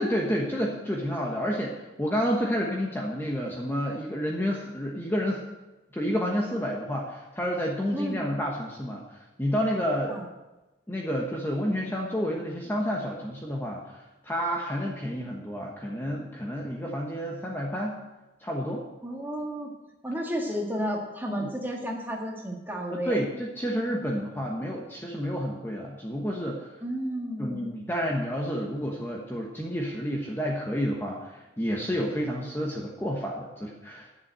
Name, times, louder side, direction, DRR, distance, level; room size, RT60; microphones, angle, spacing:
voice 1, 0.0-5.4 5.9-10.1 10.9-18.0 18.4-18.8 21.4-21.5 22.9-26.7 27.4-34.1, equal, 10° left, -1 dB, 1.1 m, -30 dB
voice 2, 7.9-8.4 10.1-10.3 19.0-19.7 20.0-23.2 26.8-27.7, equal, 10° right, 0 dB, 1.8 m, -32 dB
10.5 x 7.2 x 8.0 m, 1.1 s
head